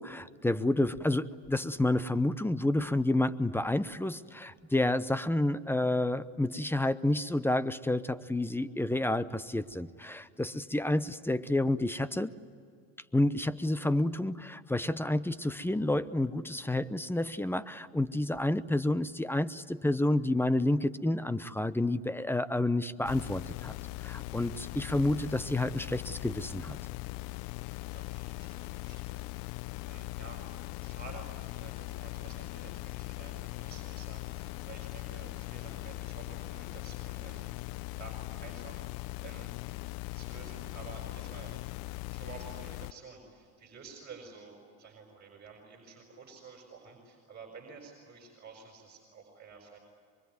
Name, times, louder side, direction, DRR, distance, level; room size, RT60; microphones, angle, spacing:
voice 1, 0.0-12.3 13.1-23.7 24.0-26.8, left 1 dB, 5° left, 15 dB, 0.8 m, -29 dB
sound 1, 23.0-42.9, left 21 dB, 60° left, 0.7 m, -40 dB
voice 2, 27.9-37.5 37.9-39.5 40.1-41.6 42.1-49.8, right 4 dB, 25° right, 1 dB, 6.1 m, -51 dB
24.0 x 23.5 x 9.5 m, 2.3 s
supercardioid pair, 95°, 40 cm